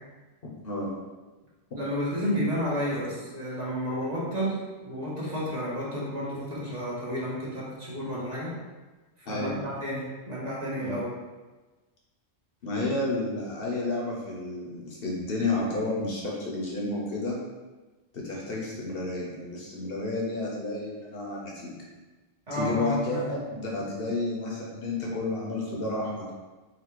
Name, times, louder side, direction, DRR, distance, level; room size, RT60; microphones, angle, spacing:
voice 1, 1.7-8.5 9.2-11.1 22.5-23.2, equal, 40° right, -7 dB, 1.2 m, -31 dB
voice 2, 9.3-9.6 10.8-10.9 12.6-17.4 18.1-21.7 22.5-26.3, left 2 dB, 60° left, -3 dB, 1.0 m, -31 dB
4.2 x 2.4 x 4.5 m, 1.2 s
omnidirectional pair, 1.1 m